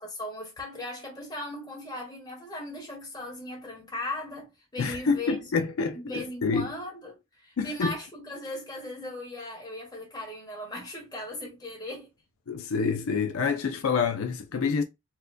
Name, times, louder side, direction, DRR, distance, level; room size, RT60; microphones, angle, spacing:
voice 1, 0.0-5.4 5.9-12.1, left 1 dB, 20° left, 1.2 m, -38 dB
voice 2, 4.8-6.7 7.6-8.0 12.5-14.8, left 5 dB, 75° left, 0.4 m, -27 dB
4.3 x 2.2 x 2.5 m
head